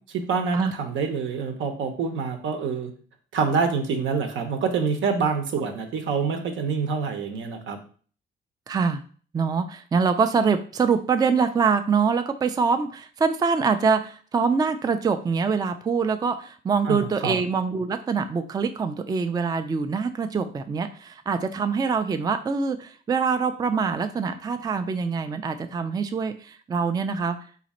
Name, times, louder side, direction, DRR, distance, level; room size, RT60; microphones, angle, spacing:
voice 1, 0.1-2.9 3.3-7.8 16.9-17.4, right 5 dB, 75° right, 5 dB, 0.8 m, -26 dB
voice 2, 8.7-9.0 9.3-27.4, right 5 dB, 20° right, 8 dB, 0.3 m, -24 dB
4.0 x 2.5 x 4.1 m, 0.43 s
cardioid pair, 90°, 20 cm